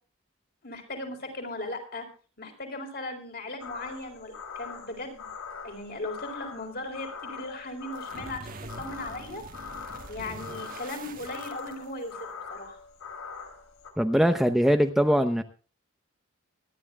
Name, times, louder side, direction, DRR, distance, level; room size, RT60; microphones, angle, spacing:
voice 1, 0.6-2.1 2.4-5.3 5.6-9.4 10.1-12.8, left 2 dB, 45° left, 3 dB, 4.3 m, -38 dB
sound 1, 3.6-13.9, left 5 dB, 85° left, 3.4 m, -42 dB
sound 2, 7.9-12.2, right 2 dB, 40° right, 1.2 m, -44 dB
voice 2, 14.0-15.4, equal, ahead, 7 dB, 0.7 m, -22 dB
24.5 x 11.0 x 2.3 m, 0.38 s
head